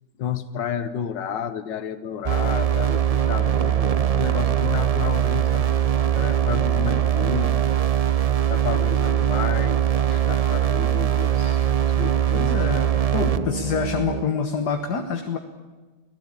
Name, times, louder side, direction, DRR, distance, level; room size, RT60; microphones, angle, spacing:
voice 1, 0.2-5.7 6.1-7.6 8.5-12.7, left 8 dB, 85° left, 11 dB, 1.8 m, -31 dB
sound 1, 2.3-14.2, right 10 dB, 65° right, 0.3 m, -21 dB
voice 2, 12.0-15.4, left 6 dB, 65° left, 4 dB, 1.9 m, -27 dB
24.5 x 17.0 x 8.8 m, 1.3 s
omnidirectional pair, 1.9 m